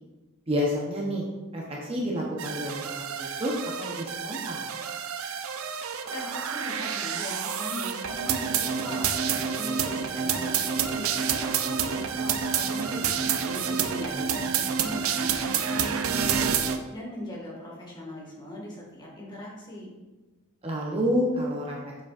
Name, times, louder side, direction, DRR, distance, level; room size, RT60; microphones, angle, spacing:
voice 1, 0.5-1.2 1.5-4.6 14.1-14.3 20.6-22.0, equal, 25° right, -3 dB, 0.9 m, -29 dB
sound 1, 2.4-16.8, right 7 dB, 70° right, 0.5 m, -28 dB
voice 2, 6.1-19.9, equal, 20° left, -4 dB, 1.9 m, -40 dB
7.3 x 6.8 x 2.5 m, 1.2 s
head